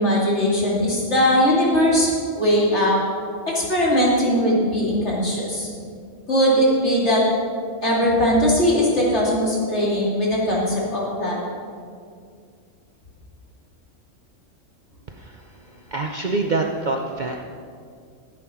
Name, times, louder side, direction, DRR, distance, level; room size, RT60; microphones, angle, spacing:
voice 1, 0.0-3.0 3.5-5.7 6.3-7.2 7.8-11.4, equal, 60° left, -5 dB, 3.0 m, -20 dB
voice 2, 15.1-17.4, right 3 dB, 45° right, 2 dB, 0.7 m, -26 dB
15.0 x 8.6 x 5.7 m, 2.2 s
omnidirectional pair, 1.3 m